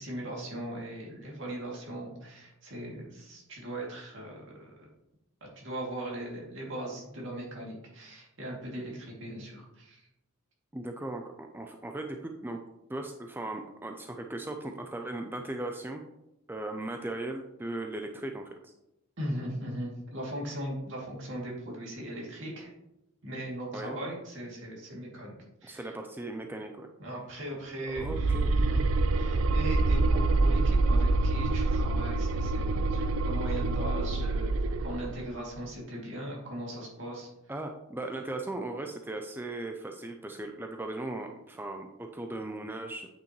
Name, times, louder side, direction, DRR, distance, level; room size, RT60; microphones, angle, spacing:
voice 1, 0.0-4.9 5.5-10.1 19.2-22.7 23.2-25.9 27.0-28.8 29.2-34.5 34.8-37.3, right 1 dB, 65° right, -2 dB, 2.5 m, -39 dB
voice 2, 10.7-12.6 12.9-16.0 16.5-18.7 23.7-24.0 25.6-26.9 27.8-28.5 37.5-43.1, right 2 dB, 10° right, 4 dB, 0.4 m, -38 dB
sound 1, 28.0-35.2, right 2 dB, 85° right, 0.4 m, -26 dB
8.7 x 5.7 x 3.0 m, 0.89 s
head